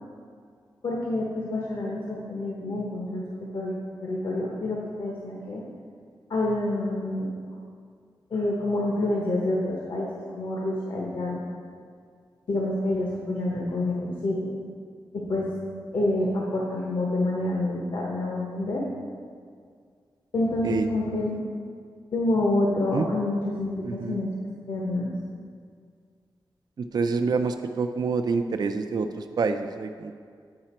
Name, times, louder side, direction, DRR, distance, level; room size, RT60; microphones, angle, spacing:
voice 1, 0.8-3.7 4.0-5.6 6.3-7.3 8.3-11.4 12.5-14.5 15.1-15.5 15.9-18.8 20.3-21.4 22.1-24.3 24.7-25.1, left 1 dB, 65° left, -3 dB, 1.0 m, -27 dB
voice 2, 23.8-24.2 26.8-30.1, right 4 dB, 55° right, 6 dB, 0.3 m, -27 dB
8.7 x 4.9 x 4.3 m, 2.1 s
wide cardioid pair, 115°, 8 cm